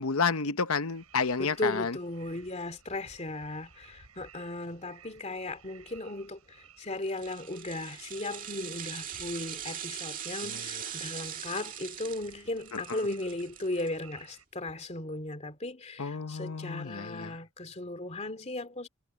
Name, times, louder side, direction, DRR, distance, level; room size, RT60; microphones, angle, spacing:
voice 1, 0.0-2.0 10.5-10.6 12.7-13.0 16.0-17.4, left 5 dB, 70° left, 0.9 m, -31 dB
sound 1, 0.9-14.4, right 7 dB, 80° right, 8.0 m, -56 dB
voice 2, 1.4-18.9, left 2 dB, 30° left, 2.5 m, -36 dB
sound 2, 7.0-14.3 14.7-14.8, right 9 dB, 40° right, 2.1 m, -41 dB
head